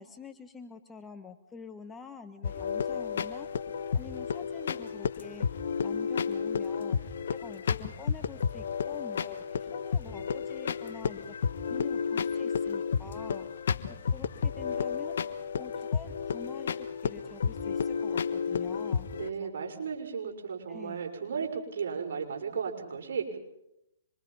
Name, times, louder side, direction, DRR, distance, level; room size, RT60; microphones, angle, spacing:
voice 1, 0.0-3.5 3.9-7.0 7.3-13.5 13.9-15.2 15.6-19.1 19.4-19.5 20.7-21.1, left 5 dB, 10° left, 8 dB, 1.5 m, -47 dB
sound 1, 2.4-19.3, left 6 dB, 60° left, 1.3 m, -32 dB
voice 2, 19.1-23.4, right 6 dB, 60° right, 1 dB, 6.0 m, -35 dB
26.0 x 23.5 x 5.6 m, 0.84 s
hypercardioid pair, 135°, 0 cm